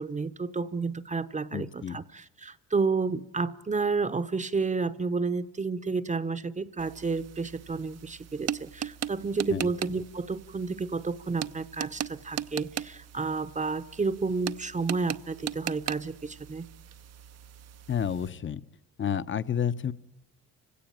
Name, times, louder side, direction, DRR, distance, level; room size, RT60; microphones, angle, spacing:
voice 1, 0.0-16.7, right 4 dB, 25° right, 11 dB, 0.9 m, -31 dB
voice 2, 1.5-2.0 9.5-9.7 17.9-18.6 19.0-19.9, left 8 dB, 40° left, 14 dB, 1.0 m, -30 dB
sound 1, 6.8-18.3, right 10 dB, 55° right, 0.7 m, -39 dB
30.0 x 17.0 x 8.9 m, 1.1 s
cardioid pair, 90°, 30 cm